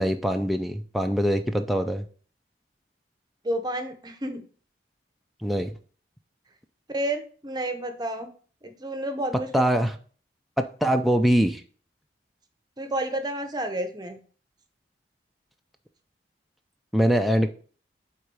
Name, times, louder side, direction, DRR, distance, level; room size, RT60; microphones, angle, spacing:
voice 1, 0.0-2.1 5.4-5.7 9.5-10.0 10.6-11.6 16.9-17.5, equal, ahead, 4 dB, 0.4 m, -23 dB
voice 2, 3.4-4.4 6.9-8.3 8.6-9.6 12.8-14.2, right 1 dB, 25° right, 8 dB, 0.8 m, -30 dB
8.0 x 3.7 x 4.8 m, 0.42 s
head